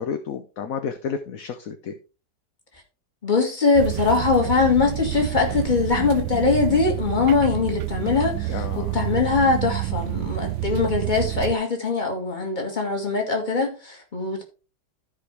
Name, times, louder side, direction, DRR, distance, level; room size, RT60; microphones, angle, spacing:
voice 1, 0.0-1.9 8.5-9.0 10.7-10.8, left 6 dB, 60° left, 1.1 m, -31 dB
voice 2, 3.2-8.5 8.8-14.4, left 4 dB, 25° left, 2.1 m, -22 dB
sound 1, 3.7-11.5, right 18 dB, 85° right, 1.2 m, -28 dB
14.0 x 5.0 x 3.3 m
omnidirectional pair, 1.8 m